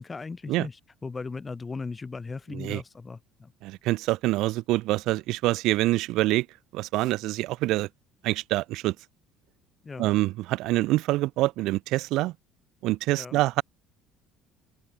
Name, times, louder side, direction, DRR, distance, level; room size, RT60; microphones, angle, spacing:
voice 1, 0.0-3.5 9.8-10.1 13.1-13.4, left 4 dB, 15° left, 1.6 m, -37 dB
voice 2, 3.6-6.5 6.7-7.9 8.2-8.9 10.0-12.3 12.8-13.6, right 18 dB, 60° right, 1.5 m, -25 dB
open air
cardioid pair, 170°, 0 cm